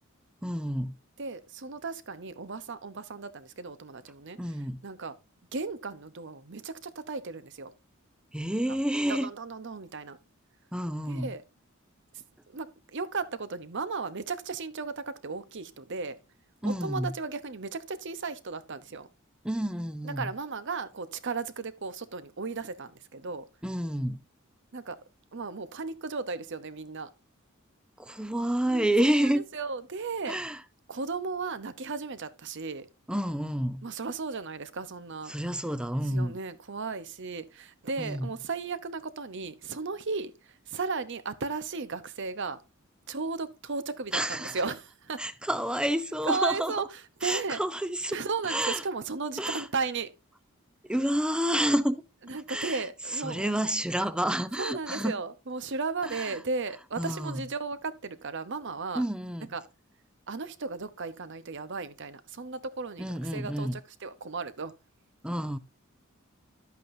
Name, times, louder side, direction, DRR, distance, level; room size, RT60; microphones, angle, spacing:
voice 1, 0.4-0.9 4.4-4.8 8.3-9.3 10.7-11.3 16.6-17.1 19.4-20.3 23.6-24.2 28.0-29.4 30.3-30.6 33.1-33.9 35.3-36.4 38.0-38.3 44.1-44.6 45.2-46.9 47.2-48.8 49.4-49.7 50.8-52.0 52.5-55.2 56.0-56.4 57.0-57.4 58.9-59.5 63.0-63.8 65.2-65.6, right 1 dB, 5° right, 0.6 m, -29 dB
voice 2, 1.2-4.4 4.8-5.1 5.5-7.7 9.1-10.2 11.1-11.4 12.5-16.2 16.6-19.1 20.0-23.4 24.7-25.0 25.3-27.1 28.6-30.3 30.9-32.9 33.8-35.3 36.0-40.3 40.7-42.6 43.1-45.2 46.3-46.9 47.2-47.6 48.1-50.1 52.3-53.6 54.6-59.0 59.5-59.6 60.3-64.7, right 4 dB, 60° right, 0.9 m, -35 dB
12.0 x 8.3 x 2.7 m
head